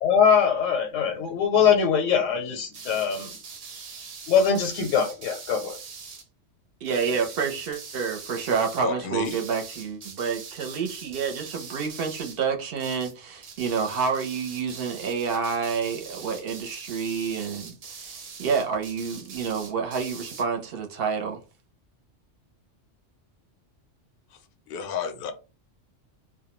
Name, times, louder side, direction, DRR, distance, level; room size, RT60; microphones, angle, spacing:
voice 1, 0.0-3.3 4.3-5.8, left 7 dB, 85° left, 0.9 m, -22 dB
sound 1, 2.7-6.3 6.8-8.9 9.2-12.5 12.8-13.2 13.4-20.5, right 5 dB, 80° right, 0.3 m, -42 dB
voice 2, 6.8-21.4, right 6 dB, 60° right, 0.8 m, -28 dB
voice 3, 8.8-9.4 24.3-25.3, left 5 dB, 60° left, 0.6 m, -31 dB
2.2 x 2.1 x 2.9 m
omnidirectional pair, 1.3 m